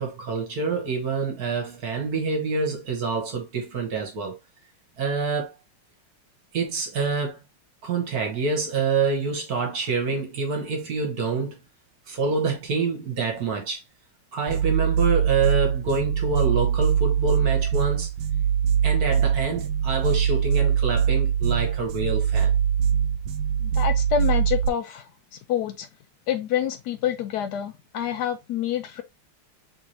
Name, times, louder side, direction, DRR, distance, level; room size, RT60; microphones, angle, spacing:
voice 1, 0.0-4.3 5.0-5.5 6.5-7.4 7.8-11.6 12.1-13.8 14.3-18.1 18.8-22.5, right 4 dB, 55° right, 1.4 m, -26 dB
sound 1, 14.5-24.7, right 8 dB, 85° right, 1.5 m, -23 dB
voice 2, 23.6-25.1 25.5-25.9 26.3-29.0, left 9 dB, 75° left, 0.9 m, -27 dB
4.6 x 3.4 x 2.8 m
omnidirectional pair, 2.3 m